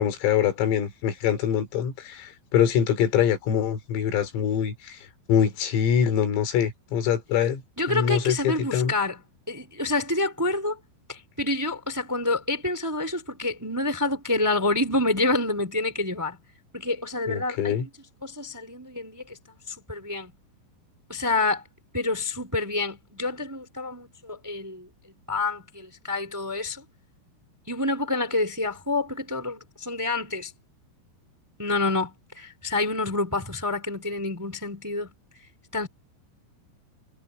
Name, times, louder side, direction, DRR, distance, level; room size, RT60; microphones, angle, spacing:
voice 1, 0.0-7.6 7.9-8.9 17.3-17.9, left 8 dB, 85° left, 5.9 m, -24 dB
voice 2, 7.8-9.2 9.5-10.8 11.1-16.4 16.7-17.9 18.2-20.3 21.1-21.6 21.9-24.9 25.3-26.8 27.7-30.5 31.6-35.1 35.7-35.9, left 2 dB, 5° right, 2.3 m, -28 dB
omnidirectional pair, 5.8 m